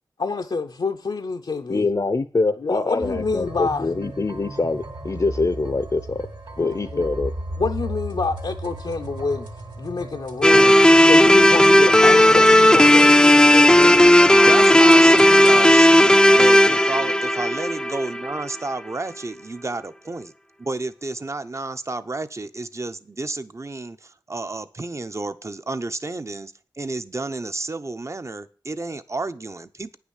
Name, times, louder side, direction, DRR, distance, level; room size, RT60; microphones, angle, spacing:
voice 1, 0.2-1.9 2.6-3.9 6.6-7.0 7.6-9.5 9.8-14.0, left 4 dB, 75° left, 0.8 m, -27 dB
voice 2, 1.7-6.3 6.6-7.3, left 3 dB, 45° left, 0.7 m, -24 dB
sound 1, 3.0-15.6, right 1 dB, 65° right, 2.4 m, -35 dB
sound 2, 10.4-18.5, left 1 dB, 10° left, 0.5 m, -13 dB
voice 3, 14.4-20.3 20.6-30.0, right 2 dB, 40° right, 0.8 m, -31 dB
9.7 x 6.0 x 8.2 m
wide cardioid pair, 75°, 8 cm